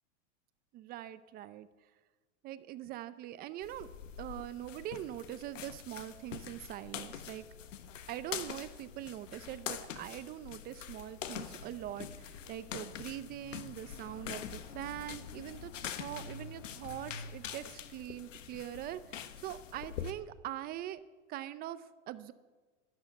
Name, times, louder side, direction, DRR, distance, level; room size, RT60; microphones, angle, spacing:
voice 1, 0.7-1.7 2.4-3.9 4.2-7.5 8.1-21.0 21.3-22.3, right 13 dB, 25° right, 14 dB, 0.5 m, -43 dB
sound 1, 3.6-20.1, left 8 dB, 90° left, 1.4 m, -44 dB
13.0 x 11.5 x 9.2 m, 1.4 s
supercardioid pair, 140°, 37 cm